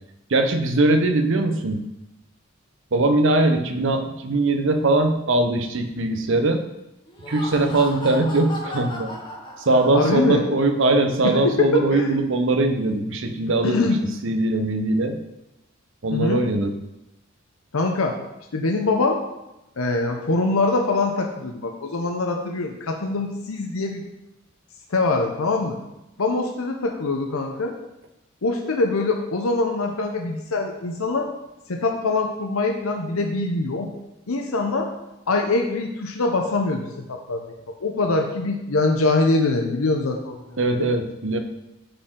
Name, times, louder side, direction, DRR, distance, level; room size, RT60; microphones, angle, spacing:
voice 1, 0.3-1.8 2.9-6.6 7.3-9.1 9.6-13.9 14.2-15.2 16.0-16.7 40.6-41.4, right 2 dB, 65° right, 7 dB, 0.7 m, -21 dB
Laughter, 7.0-10.3, left 1 dB, 20° left, 1.1 m, -35 dB
voice 2, 9.9-10.4 11.2-12.1 13.6-14.0 16.1-16.4 17.7-18.2 18.5-19.2 19.8-24.0 24.9-25.8 26.2-27.7 28.4-31.3 31.7-33.9 34.3-34.9 35.3-36.8 37.1-37.4 37.8-40.9, left 3 dB, 90° left, 3 dB, 0.8 m, -23 dB
8.9 x 4.4 x 3.7 m, 0.91 s
head